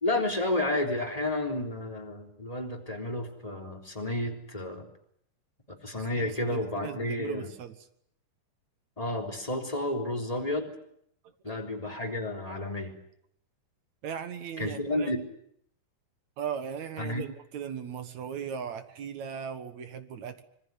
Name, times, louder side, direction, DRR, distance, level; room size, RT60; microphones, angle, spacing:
voice 1, 0.0-4.9 5.8-7.5 9.0-10.7 11.4-12.9 14.6-15.2 17.0-17.2, left 1 dB, 10° left, 2 dB, 3.5 m, -31 dB
voice 2, 6.0-7.9 11.5-11.6 14.0-15.1 16.4-20.4, right 7 dB, 60° right, 10 dB, 2.6 m, -38 dB
26.0 x 22.0 x 9.6 m, 0.70 s
omnidirectional pair, 3.9 m